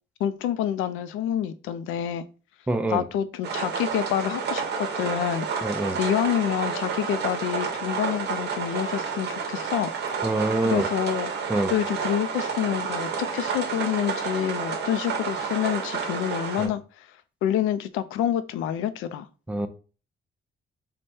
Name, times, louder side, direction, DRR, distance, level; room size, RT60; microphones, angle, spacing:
voice 1, 0.2-2.3 2.9-5.5 6.0-9.9 10.6-11.3 11.7-17.1 17.4-19.3, left 10 dB, 90° left, 0.4 m, -27 dB
voice 2, 2.7-3.0 5.6-6.0 10.2-10.9 11.5-11.7 16.6-16.7 19.5-19.7, right 2 dB, 5° right, 0.5 m, -25 dB
sound 1, 3.4-16.7, right 5 dB, 60° right, 0.8 m, -30 dB
3.3 x 2.2 x 4.1 m
cardioid pair, 90°, 20 cm